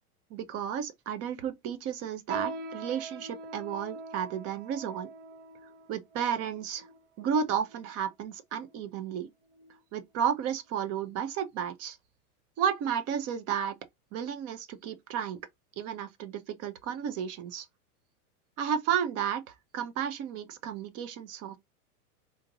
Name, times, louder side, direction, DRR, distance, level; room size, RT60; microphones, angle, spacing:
voice 1, 0.3-5.1 5.9-6.9 7.2-9.3 9.9-12.0 12.6-13.7 14.1-15.4 15.8-17.7 18.6-19.4 19.7-21.6, right 8 dB, 35° right, 0.6 m, -32 dB
sound 1, 2.3-8.0 8.6-8.8 9.5-9.8 10.2-10.4 11.1-11.2, right 3 dB, 65° right, 1.0 m, -43 dB
3.8 x 2.5 x 3.0 m
hypercardioid pair, 115°, 45 cm